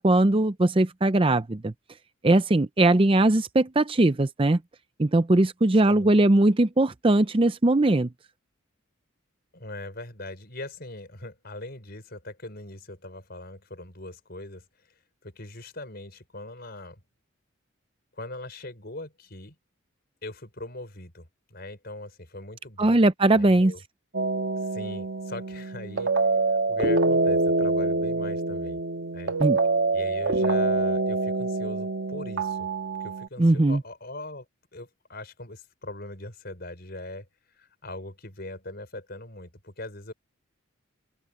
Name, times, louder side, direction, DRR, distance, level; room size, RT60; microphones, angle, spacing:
voice 1, 0.0-1.7 2.2-4.6 5.0-8.1 22.8-23.7 29.4-29.6 33.4-33.8, right 2 dB, 25° right, 0.5 m, -20 dB
voice 2, 9.5-14.6 15.2-17.0 18.2-19.6 20.2-23.0 23.3-23.8 24.6-26.1 26.7-28.8 29.1-29.3 29.9-32.7 33.0-34.5 34.7-37.3 37.5-40.1, left 2 dB, 50° left, 5.1 m, -40 dB
sound 1, 24.1-33.3, right 3 dB, 60° right, 1.6 m, -25 dB
open air
head